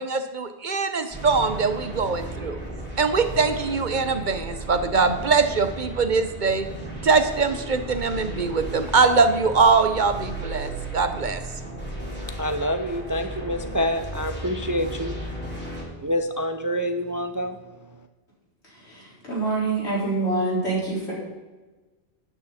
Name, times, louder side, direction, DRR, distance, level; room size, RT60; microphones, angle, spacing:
voice 1, 0.0-2.6 3.0-6.7 7.0-11.4, right 4 dB, 50° right, 9 dB, 0.9 m, -22 dB
sound 1, 1.1-15.8, right 1 dB, 10° left, 2.9 m, -35 dB
voice 2, 12.4-15.2 16.0-17.6, equal, 25° right, 8 dB, 0.4 m, -27 dB
voice 3, 18.7-21.1, right 3 dB, 85° left, -6 dB, 5.0 m, -26 dB
12.5 x 9.2 x 4.2 m, 1.2 s
omnidirectional pair, 1.1 m